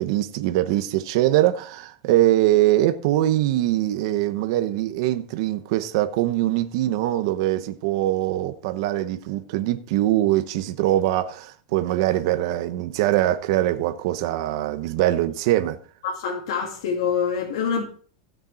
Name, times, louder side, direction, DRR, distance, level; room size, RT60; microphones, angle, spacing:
voice 1, 0.0-15.8, right 14 dB, 60° right, 0.9 m, -22 dB
voice 2, 16.0-17.8, left 6 dB, 75° left, 2.4 m, -25 dB
15.5 x 6.7 x 4.3 m
supercardioid pair, 155°, 3 cm